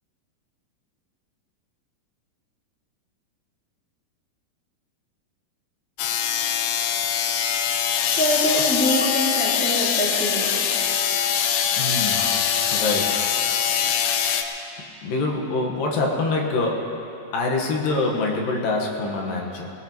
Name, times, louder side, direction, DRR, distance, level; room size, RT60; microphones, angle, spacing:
sound 1, 6.0-14.4, left 8 dB, 80° left, 2.6 m, -23 dB
voice 1, 8.1-10.5, equal, 10° left, -5 dB, 0.5 m, -24 dB
voice 2, 11.8-12.3 12.7-13.4 15.0-17.0 17.3-19.7, left 3 dB, 65° left, 0 dB, 2.7 m, -25 dB
23.0 x 18.0 x 3.0 m, 2.8 s
omnidirectional pair, 4.7 m